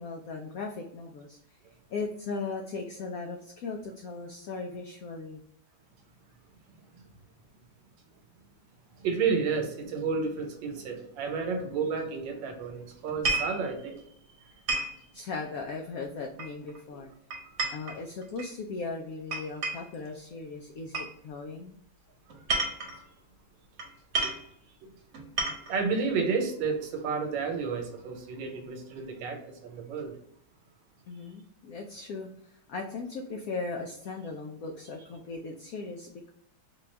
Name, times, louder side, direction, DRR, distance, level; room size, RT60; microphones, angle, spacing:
voice 1, 0.0-1.4 1.9-5.4 15.1-17.1 17.7-21.8 31.1-36.3, left 4 dB, 90° left, 2 dB, 0.7 m, -38 dB
voice 2, 9.0-14.0 17.5-17.7 22.4-22.9 24.2-24.3 24.8-24.9 25.4-30.1, right 5 dB, 80° right, 3 dB, 1.5 m, -31 dB
sound 1, 13.1-13.6 14.7-15.0 16.4-16.8 17.3-18.5 19.3-20.0 20.9-21.1 22.3-23.0 23.8-23.9 24.1-24.5 25.1-25.8, right 3 dB, 50° right, 1.0 m, -31 dB
4.2 x 2.3 x 3.1 m, 0.74 s
omnidirectional pair, 2.1 m